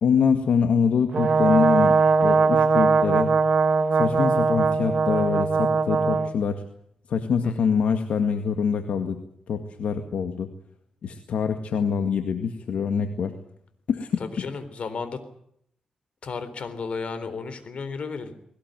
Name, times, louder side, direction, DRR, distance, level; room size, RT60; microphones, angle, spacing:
voice 1, 0.0-3.3 3.9-6.6 7.1-9.2 9.5-10.5 11.0-13.4 13.9-14.2, left 6 dB, 80° left, 6 dB, 2.0 m, -24 dB
Brass instrument, 1.1-6.3, right 4 dB, 55° right, 1.5 m, -20 dB
voice 2, 14.2-15.2 16.2-18.3, left 4 dB, 60° left, 11 dB, 3.8 m, -33 dB
20.5 x 19.0 x 9.1 m, 0.70 s
cardioid pair, 95°, 2 cm